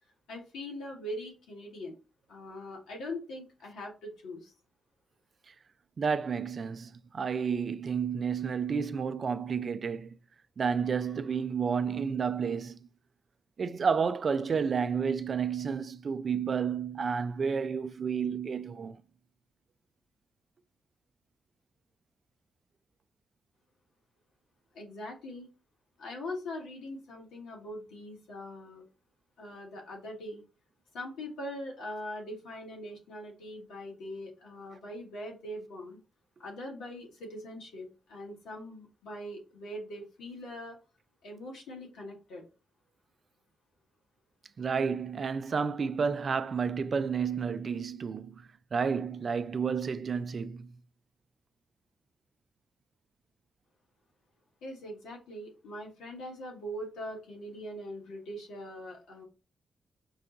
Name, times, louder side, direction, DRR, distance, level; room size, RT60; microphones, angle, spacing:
voice 1, 0.3-2.0 2.3-4.5 24.7-25.5 26.0-28.8 29.4-30.4 30.9-36.0 36.4-40.8 41.2-42.4 54.6-59.3, left 1 dB, 80° left, 1.3 m, -42 dB
voice 2, 6.0-10.2 10.6-12.8 13.6-19.0 44.6-48.4 48.7-50.7, right 6 dB, 55° right, 0.3 m, -31 dB
4.7 x 2.2 x 3.7 m
hypercardioid pair, 45°, 0 cm